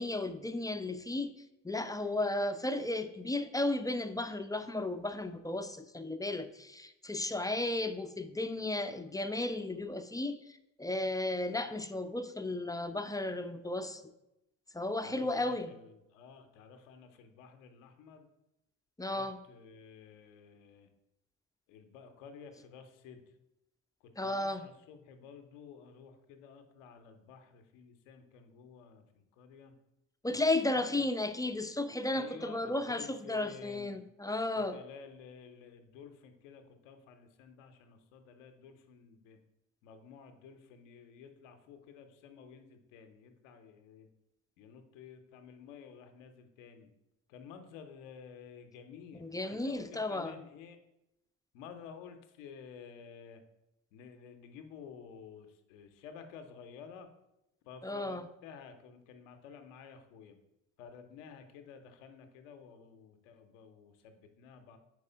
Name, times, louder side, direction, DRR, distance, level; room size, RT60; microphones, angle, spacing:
voice 1, 0.0-1.3 1.6-14.0 14.7-15.7 19.0-19.4 24.2-24.6 30.2-34.8 49.2-50.4 57.8-58.2, left 2 dB, 10° left, 8 dB, 0.5 m, -34 dB
voice 2, 15.0-18.3 19.1-20.9 21.7-23.2 24.2-29.7 30.7-31.1 32.1-34.0 34.5-39.4 39.8-44.1 44.6-46.9 47.3-50.8 51.5-53.4 53.9-57.1 57.6-60.4 60.8-64.8, left 6 dB, 85° left, 7 dB, 0.8 m, -52 dB
4.8 x 4.6 x 5.5 m, 0.89 s
hypercardioid pair, 50°, 37 cm